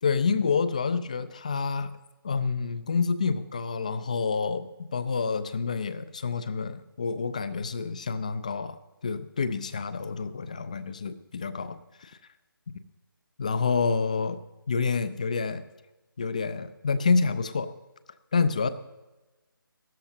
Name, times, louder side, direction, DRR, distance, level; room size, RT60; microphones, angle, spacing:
voice 1, 0.0-2.0 2.2-8.8 9.0-12.1 13.4-14.4 14.7-15.6 16.2-17.7 18.3-18.7, left 5 dB, 20° left, 13 dB, 0.4 m, -28 dB
16.5 x 13.0 x 2.7 m, 1.1 s
figure-of-eight pair, 155°, 12 cm